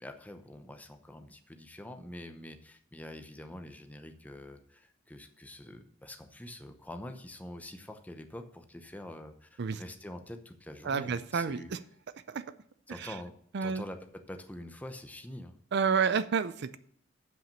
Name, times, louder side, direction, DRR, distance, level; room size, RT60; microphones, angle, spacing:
voice 1, 0.0-11.7 12.9-13.3 13.6-15.6, left 1 dB, 10° left, 6 dB, 0.7 m, -45 dB
voice 2, 10.9-11.6 12.3-12.4 13.0-13.1 13.5-13.8 15.7-16.8, right 6 dB, 60° right, 14 dB, 0.5 m, -29 dB
7.8 x 6.0 x 6.7 m, 0.63 s
head